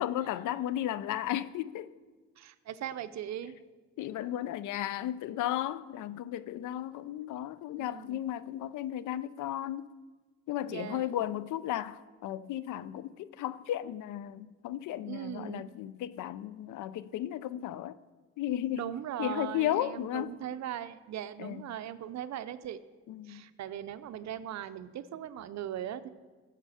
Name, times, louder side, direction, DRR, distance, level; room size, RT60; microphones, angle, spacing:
voice 1, 0.0-1.9 4.0-9.9 10.5-18.0 18.4-18.9 19.2-20.3 21.4-21.7 23.1-23.5, left 12 dB, 80° left, 0.5 m, -34 dB
voice 2, 2.4-3.6 7.8-8.2 10.7-11.3 15.1-15.7 18.7-22.8 23.2-26.1, right 11 dB, 65° right, 0.6 m, -39 dB
15.0 x 6.7 x 5.0 m
cardioid pair, 90°, 30 cm